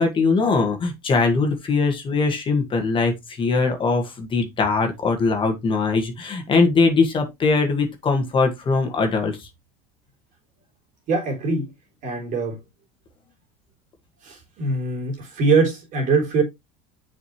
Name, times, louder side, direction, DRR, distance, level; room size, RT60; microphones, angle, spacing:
voice 1, 0.0-9.5, left 4 dB, 30° left, 1.8 m, -21 dB
voice 2, 11.1-11.7 12.0-12.6 14.2-16.4, right 4 dB, 50° right, 3.3 m, -22 dB
7.1 x 5.2 x 3.1 m
supercardioid pair, 125°, 17 cm